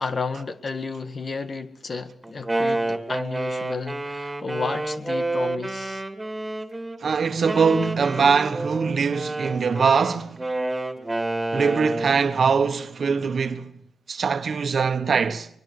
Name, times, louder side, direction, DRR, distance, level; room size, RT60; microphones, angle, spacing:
voice 1, 0.0-6.0, left 4 dB, 45° left, 1.8 m, -32 dB
Wind instrument woodwind instrument, 2.2-7.0 7.5-12.2, right 2 dB, 15° right, 3.1 m, -29 dB
voice 2, 7.0-10.4 11.5-13.7 14.1-15.5, right 5 dB, 60° right, 1.4 m, -22 dB
24.0 x 22.0 x 6.8 m
cardioid pair, 70°, 0 cm